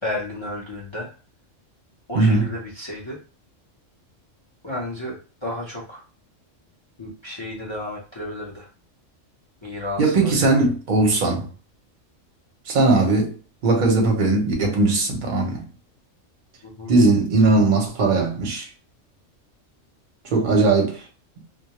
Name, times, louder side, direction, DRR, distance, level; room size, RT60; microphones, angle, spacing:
voice 1, 0.0-1.1 2.1-3.2 4.6-6.0 7.0-8.7 9.6-10.6 16.6-16.9, left 1 dB, 40° left, 0.4 m, -32 dB
voice 2, 10.0-11.5 12.7-13.3 13.6-15.6 16.9-18.7 20.3-21.0, right 3 dB, 50° right, 0.7 m, -19 dB
2.2 x 2.0 x 2.8 m
omnidirectional pair, 1.3 m